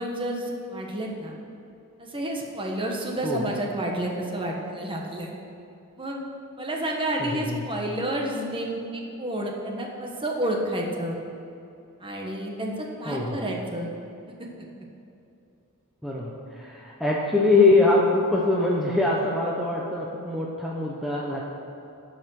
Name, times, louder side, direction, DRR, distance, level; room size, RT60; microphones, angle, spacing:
voice 1, 0.0-1.3 2.0-5.3 6.0-6.2 6.6-11.2 12.0-13.9, right 1 dB, 25° right, 0 dB, 1.3 m, -30 dB
voice 2, 3.2-3.5 7.2-7.7 13.1-13.5 16.0-21.4, left 2 dB, ahead, -4 dB, 0.9 m, -23 dB
12.0 x 5.5 x 6.4 m, 2.7 s
head